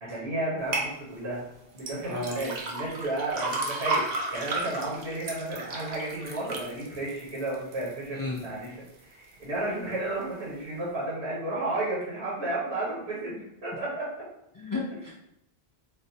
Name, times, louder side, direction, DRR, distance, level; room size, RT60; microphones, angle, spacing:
voice 1, 0.0-1.4 1.7-13.3 13.6-14.1, right 2 dB, 85° right, -6 dB, 1.2 m, -32 dB
sound 1, 0.7-0.9 1.8-7.9 8.4-8.9 9.4-9.5, right 2 dB, 50° right, 0.6 m, -33 dB
voice 2, 2.1-2.4 8.1-8.4 14.5-15.1, left 2 dB, 35° left, -5 dB, 0.3 m, -33 dB
4.1 x 2.1 x 2.6 m, 0.81 s
omnidirectional pair, 1.0 m